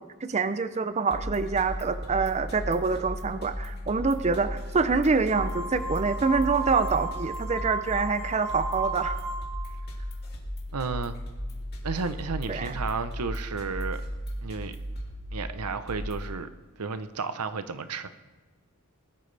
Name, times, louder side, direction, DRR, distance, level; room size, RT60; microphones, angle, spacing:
voice 1, 0.0-9.2 12.5-12.7, right 4 dB, 30° right, 11 dB, 0.5 m, -26 dB
sound 1, 1.1-16.3, equal, 45° left, 2.2 m, -36 dB
sound 2, 5.3-9.7, right 2 dB, 70° right, 3.8 m, -35 dB
voice 2, 10.7-11.2 11.8-14.0 14.4-14.8 15.3-16.5 16.8-18.1, right 4 dB, 90° right, 11 dB, 0.8 m, -32 dB
20.5 x 12.0 x 3.4 m, 1.3 s
head